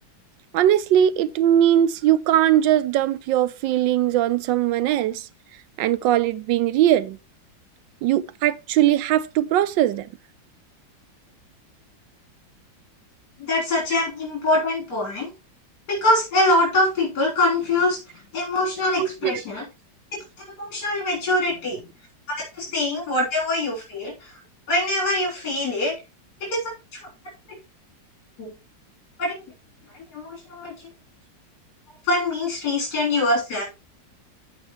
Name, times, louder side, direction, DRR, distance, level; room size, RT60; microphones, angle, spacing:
voice 1, 0.5-5.3 5.8-7.2 8.0-10.1 19.0-19.4, right 11 dB, 80° right, 1.3 m, -20 dB
voice 2, 13.4-15.3 15.9-18.0 18.3-19.6 20.6-21.9 22.5-24.3 24.7-25.9 26.4-26.7 28.4-28.5 29.2-29.4 30.1-30.7 32.0-33.6, left 2 dB, 60° left, 4.0 m, -23 dB
14.5 x 4.8 x 3.1 m
omnidirectional pair, 2.0 m